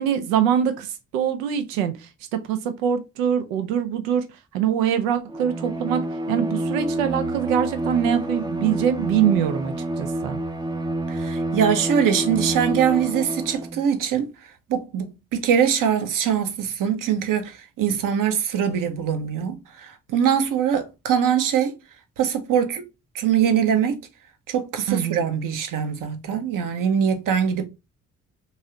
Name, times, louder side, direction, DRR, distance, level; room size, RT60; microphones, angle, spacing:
voice 1, 0.0-4.2 4.5-6.0 6.3-10.4 24.9-25.2, right 9 dB, 85° right, 0.5 m, -23 dB
Bowed string instrument, 5.3-13.8, right 1 dB, 10° right, 0.4 m, -28 dB
voice 2, 11.1-14.3 14.7-15.1 15.3-21.7 22.2-22.8 23.1-24.0 24.5-27.7, right 8 dB, 55° right, 0.8 m, -22 dB
3.1 x 2.7 x 2.8 m
hypercardioid pair, 40°, 39 cm